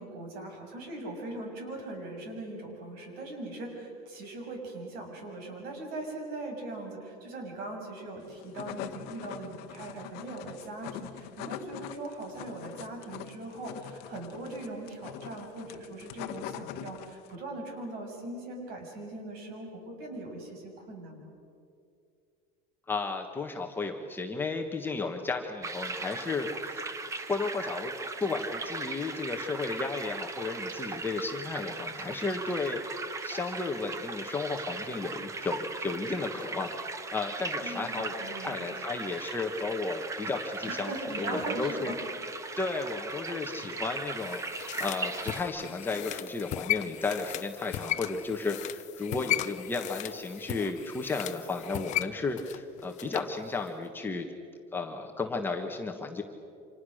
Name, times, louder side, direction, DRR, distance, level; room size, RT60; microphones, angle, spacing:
voice 1, 0.0-21.3 37.6-38.8 40.7-42.0, right 2 dB, 55° right, 2 dB, 6.9 m, -40 dB
sound 1, 8.3-17.4, left 13 dB, 60° left, 1.2 m, -43 dB
voice 2, 22.9-26.8 27.1-27.9 28.2-32.8 33.2-41.9 42.6-44.4 44.8-54.3 54.7-56.2, left 3 dB, 10° left, 2 dB, 1.3 m, -33 dB
sound 2, 25.6-45.4, right 3 dB, 15° right, 1.0 m, -38 dB
sound 3, 43.9-53.4 53.7-53.8, left 14 dB, 40° left, 0.7 m, -36 dB
30.0 x 26.5 x 6.5 m, 2.4 s
cardioid pair, 175°, 19 cm